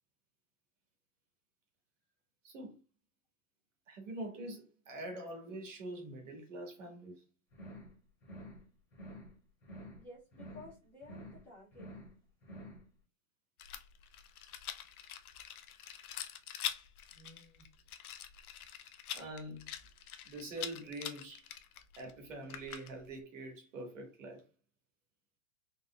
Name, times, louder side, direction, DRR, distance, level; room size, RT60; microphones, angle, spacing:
voice 1, 2.4-2.8 3.9-7.2 17.1-17.6 19.1-19.8 20.2-21.5 22.0-24.5, right 1 dB, 55° right, 1.5 m, -45 dB
sound 1, 7.5-7.9 8.2-8.6 8.9-9.3 9.6-10.0 10.3-10.7 11.0-11.4 11.7-12.1 12.4-12.8, equal, 20° left, 1.8 m, -49 dB
voice 2, 9.9-11.9, left 2 dB, 5° left, 1.1 m, -54 dB
Rattle, 13.6-23.2, left 10 dB, 70° left, 0.6 m, -45 dB
4.1 x 3.3 x 2.2 m
hypercardioid pair, 175°, 46 cm